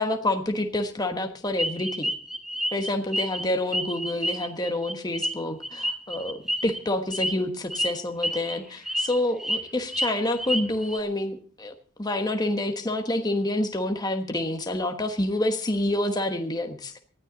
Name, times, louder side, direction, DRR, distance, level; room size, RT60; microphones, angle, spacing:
voice 1, 0.0-2.1 2.7-17.0, left 1 dB, 20° left, 5 dB, 1.3 m, -28 dB
sound 1, 1.6-3.4 3.7-6.8 7.1-7.3 7.7-7.9 8.2-8.5 8.9-9.6 9.9-11.0, equal, ahead, 1.2 m, -29 dB
19.0 x 13.0 x 4.0 m, 0.41 s
head